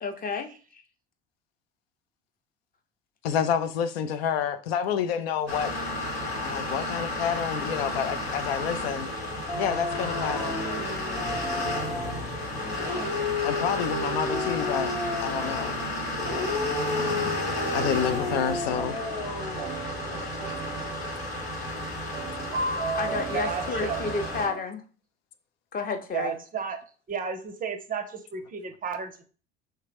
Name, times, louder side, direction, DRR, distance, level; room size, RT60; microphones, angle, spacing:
voice 1, 0.0-0.8 22.9-24.8 25.7-26.4, left 4 dB, 30° left, 0.7 m, -31 dB
voice 2, 3.2-5.7 6.4-9.1 9.6-10.6 13.4-14.9 15.2-15.8 16.9-17.3 17.7-19.0, left 8 dB, 70° left, 0.4 m, -29 dB
sound 1, 5.5-24.5, left 1 dB, 90° left, 1.2 m, -32 dB
Dog, 9.5-12.3 12.7-15.8 16.2-19.8, left 3 dB, 45° left, 1.0 m, -33 dB
sound 2, 14.1-24.6, right 3 dB, 80° right, 0.6 m, -38 dB
voice 3, 23.3-24.0 26.1-26.8 27.1-29.2, right 6 dB, 25° right, 0.5 m, -33 dB
3.2 x 2.8 x 3.4 m
figure-of-eight pair, 65°, 31 cm